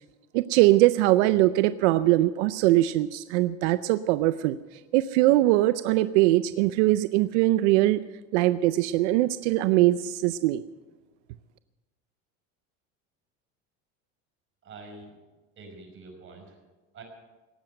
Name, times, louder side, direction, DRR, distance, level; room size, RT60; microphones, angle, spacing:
voice 1, 0.3-4.6 4.9-8.0 8.3-10.6, right 16 dB, 90° right, 14 dB, 0.6 m, -21 dB
voice 2, 14.6-15.1 15.6-16.6 16.9-17.0, right 3 dB, 35° right, 2 dB, 5.1 m, -45 dB
18.5 x 7.8 x 8.9 m, 1.2 s
supercardioid pair, 130°, 34 cm